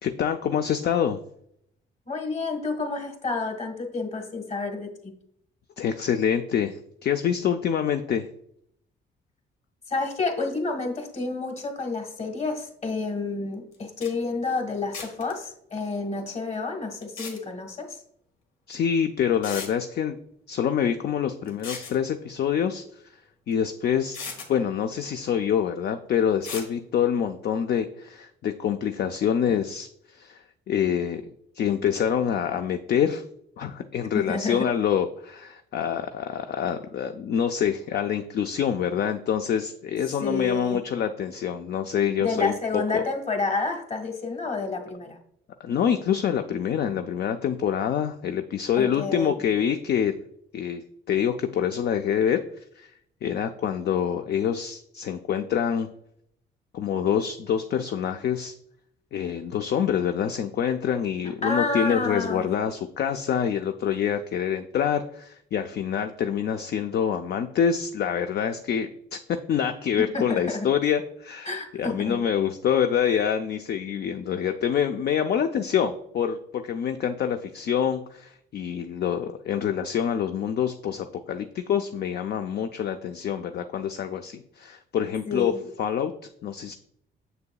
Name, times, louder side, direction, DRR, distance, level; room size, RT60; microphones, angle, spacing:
voice 1, 0.0-1.2 5.8-8.3 18.7-20.2 20.5-23.2 23.5-24.2 24.5-31.2 31.5-33.2 33.6-43.0 45.6-50.2 50.5-50.8 51.1-52.9 53.2-55.9 56.7-58.5 59.1-85.5 85.8-86.1 86.4-86.7, left 8 dB, 55° left, 7 dB, 0.5 m, -26 dB
voice 2, 2.1-5.1 9.9-18.0 34.1-34.6 40.2-40.8 42.2-45.2 48.8-49.3 61.4-62.5 70.1-70.7 71.4-72.2 85.3-85.6, left 3 dB, 35° left, 4 dB, 1.5 m, -29 dB
sound 1, 13.7-13.8 14.0-14.1 14.9-15.3 17.0-17.4 18.7-18.8 19.4-19.7 21.5-22.0 23.5-23.6 24.1-24.5 26.4-26.7, left 4 dB, 90° left, 1.4 m, -36 dB
6.8 x 6.7 x 2.3 m, 0.70 s
cardioid pair, 90°, 20 cm